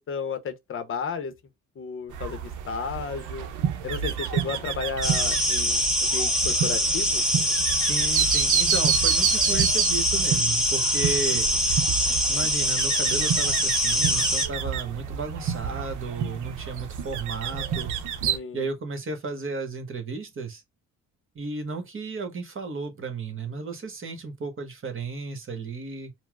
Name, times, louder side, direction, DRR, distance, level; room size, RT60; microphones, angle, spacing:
voice 1, 0.0-1.3 1.8-3.5 3.8-7.2 18.3-18.7, left 5 dB, 45° left, 0.7 m, -33 dB
sound 1, 2.1-18.4, right 9 dB, 80° right, 0.6 m, -29 dB
sound 2, 5.0-14.5, equal, ahead, 1.0 m, -24 dB
voice 2, 7.8-11.5 12.3-17.9 18.5-20.6 21.3-26.1, right 4 dB, 45° right, 1.1 m, -34 dB
4.4 x 2.0 x 2.2 m
cardioid pair, 90°, 30 cm